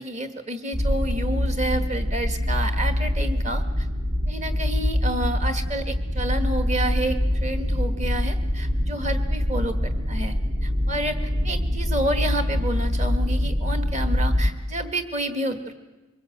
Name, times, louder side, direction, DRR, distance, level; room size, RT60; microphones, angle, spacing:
voice 1, 0.0-3.9 4.3-10.3 10.6-11.2 11.4-15.7, right 1 dB, 35° right, 8 dB, 1.5 m, -29 dB
sound 1, 0.7-14.5, left 1 dB, 60° right, 2.7 m, -24 dB
23.5 x 21.0 x 7.9 m, 1.1 s
head